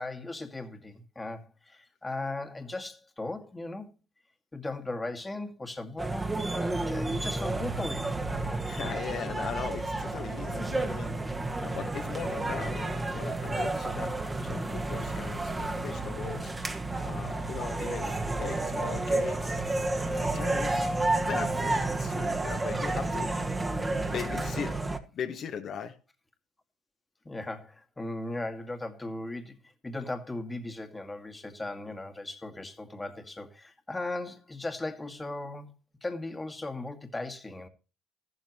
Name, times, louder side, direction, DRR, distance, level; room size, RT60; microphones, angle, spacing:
voice 1, 0.0-3.9 4.5-8.1 23.8-23.9 27.3-29.6 29.8-35.7 36.0-37.7, left 2 dB, 15° left, 2.1 m, -37 dB
sound 1, 6.0-25.0, right 2 dB, 15° right, 2.0 m, -31 dB
voice 2, 8.6-14.2 14.4-16.5 17.0-19.6 20.0-20.9 21.3-24.8 25.1-26.0, left 7 dB, 50° left, 1.7 m, -39 dB
14.0 x 12.5 x 3.1 m
supercardioid pair, 85°, 0 cm